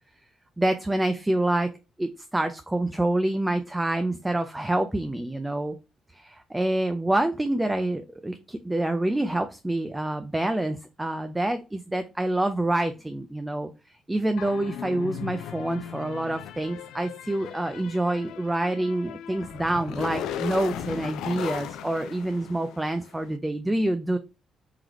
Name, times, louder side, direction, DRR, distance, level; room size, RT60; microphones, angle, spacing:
voice 1, 0.6-1.7 2.0-5.8 6.1-13.7 14.1-24.2, right 1 dB, 10° right, 8 dB, 0.4 m, -27 dB
sound 1, 14.4-23.1, left 9 dB, 85° left, 0.3 m, -37 dB
3.9 x 3.0 x 3.0 m, 0.29 s
cardioid pair, 90°, 0 cm